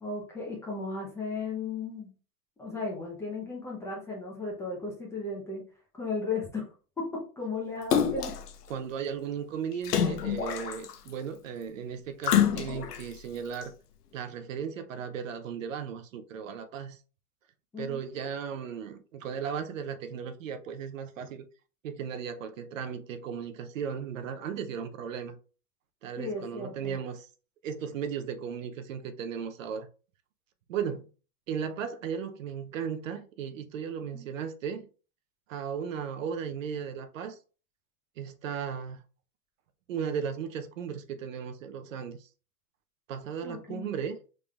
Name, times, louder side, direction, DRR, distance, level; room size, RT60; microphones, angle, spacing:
voice 1, 0.0-2.1 2.6-5.6 5.9-6.7 7.0-8.4 17.7-18.0 26.2-27.0 34.1-34.3 43.4-43.9, left 3 dB, 5° left, 0.7 m, -35 dB
Splash splatter, 7.9-8.5 9.8-11.1 12.2-13.0 13.6-13.7, left 9 dB, 90° left, 0.9 m, -26 dB
voice 2, 8.7-13.7 14.1-17.0 17.8-21.4 21.8-25.4 26.0-27.3 27.6-29.9 30.7-31.1 31.5-34.9 35.5-37.4 38.2-39.0 39.9-42.3 43.1-44.2, right 7 dB, 60° right, 0.7 m, -36 dB
5.1 x 3.8 x 2.4 m
hypercardioid pair, 150°, 45 cm